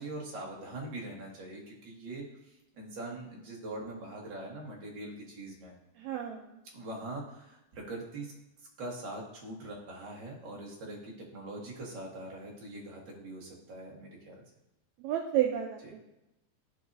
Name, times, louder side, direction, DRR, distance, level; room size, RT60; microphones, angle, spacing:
voice 1, 0.0-2.2 2.7-5.7 6.7-8.3 8.8-14.4, right 2 dB, 45° right, -2 dB, 1.9 m, -42 dB
voice 2, 6.0-6.6 15.0-16.0, right 11 dB, 80° right, 1 dB, 1.8 m, -31 dB
13.5 x 4.7 x 2.7 m, 0.91 s
omnidirectional pair, 3.5 m